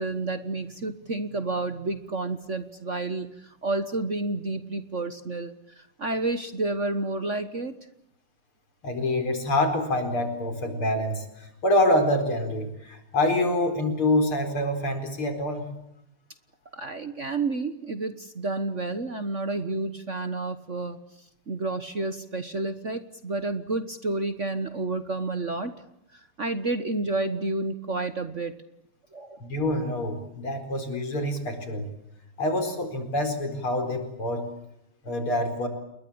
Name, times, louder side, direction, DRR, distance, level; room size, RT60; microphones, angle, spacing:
voice 1, 0.0-7.7 16.7-21.0 21.5-25.7 26.1-28.5 29.1-29.5, right 2 dB, 40° right, 10 dB, 1.4 m, -30 dB
voice 2, 8.8-15.6 29.4-31.9 32.4-34.5 35.0-35.7, left 1 dB, 70° left, 7 dB, 5.5 m, -26 dB
29.0 x 22.0 x 8.8 m, 0.82 s
omnidirectional pair, 2.4 m